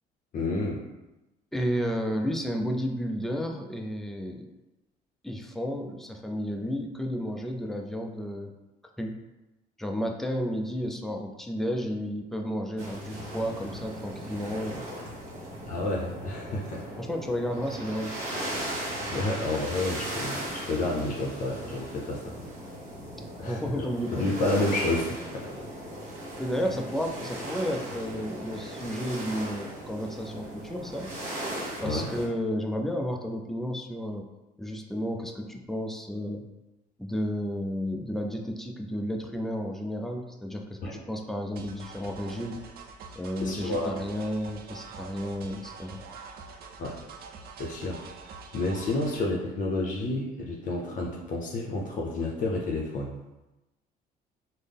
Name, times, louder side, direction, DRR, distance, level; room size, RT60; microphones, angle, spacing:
voice 1, 0.3-0.8 15.7-16.8 19.1-22.3 23.4-25.5 31.8-32.1 40.8-40.9 43.4-43.9 46.8-47.0 47.6-48.0 48.5-53.1, left 2 dB, 50° left, -3 dB, 0.6 m, -30 dB
voice 2, 1.5-4.5 5.2-8.5 9.0-9.2 9.8-14.9 17.0-18.2 23.4-24.3 26.4-31.1 31.8-34.3 34.6-36.5 37.0-42.6 43.1-46.0, equal, ahead, 2 dB, 0.4 m, -32 dB
sound 1, 12.8-32.3, right 1 dB, 45° right, 1.4 m, -38 dB
sound 2, 41.6-49.3, right 4 dB, 65° right, 0.5 m, -45 dB
3.8 x 2.0 x 3.4 m, 1.0 s
cardioid pair, 110°, 17 cm